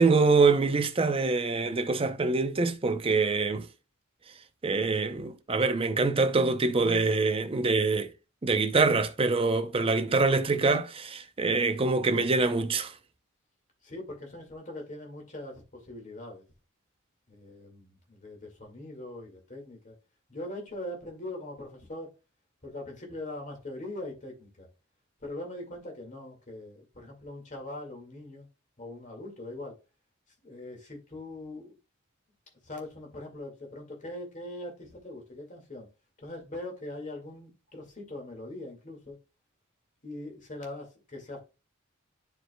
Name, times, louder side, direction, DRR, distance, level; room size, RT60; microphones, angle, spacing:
voice 1, 0.0-3.7 4.6-8.1 8.4-12.9, right 3 dB, 25° right, 0.6 m, -25 dB
voice 2, 13.8-16.4 17.3-20.0 20.3-22.1 22.6-24.7 25.2-28.5 28.8-29.8 30.4-31.8 32.6-35.9 36.2-39.2 40.0-41.4, left 1 dB, 35° left, 2.0 m, -41 dB
9.9 x 4.7 x 2.2 m
head